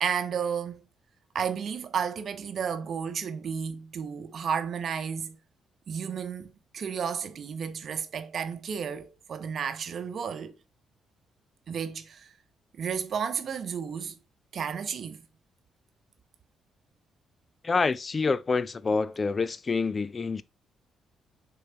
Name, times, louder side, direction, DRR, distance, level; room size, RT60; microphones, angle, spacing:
voice 1, 0.0-0.8 1.3-5.4 5.9-10.6 11.7-12.3 12.7-14.2 14.5-15.2, right 7 dB, 50° right, 0.8 m, -32 dB
voice 2, 17.6-20.4, left 4 dB, 35° left, 0.4 m, -27 dB
6.6 x 3.9 x 4.4 m
figure-of-eight pair, 40°, 0 cm